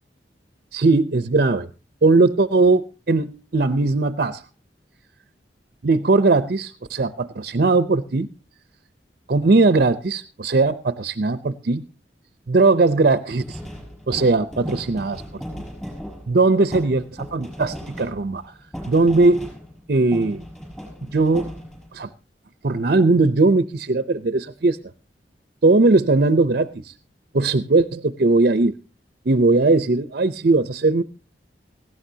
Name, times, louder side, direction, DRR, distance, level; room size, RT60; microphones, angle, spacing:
voice 1, 0.7-1.7 2.0-4.4 5.8-8.3 9.3-11.8 12.5-13.6 14.1-15.4 16.3-18.5 18.9-19.5 19.9-20.4 21.1-21.5 21.9-22.1 22.6-24.8 25.6-26.9 27.3-28.8 29.3-31.0, right 3 dB, 60° right, 13 dB, 0.6 m, -19 dB
sound 1, 13.4-19.9 20.1-22.0, equal, 5° left, 5.6 m, -36 dB
18.0 x 15.5 x 2.8 m, 0.31 s
head